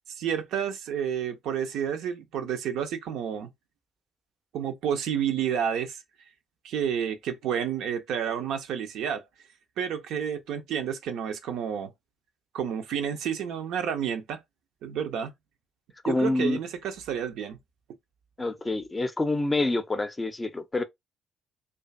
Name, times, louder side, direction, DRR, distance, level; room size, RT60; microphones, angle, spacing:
voice 1, 0.1-3.5 4.5-6.0 6.6-9.2 9.8-11.9 12.5-14.4 14.8-15.3 16.1-17.6, right 8 dB, 65° right, 0.4 m, -30 dB
voice 2, 16.0-16.6 18.4-20.8, left 2 dB, 25° left, 0.5 m, -27 dB
2.5 x 2.3 x 2.4 m
figure-of-eight pair, 45°, 0 cm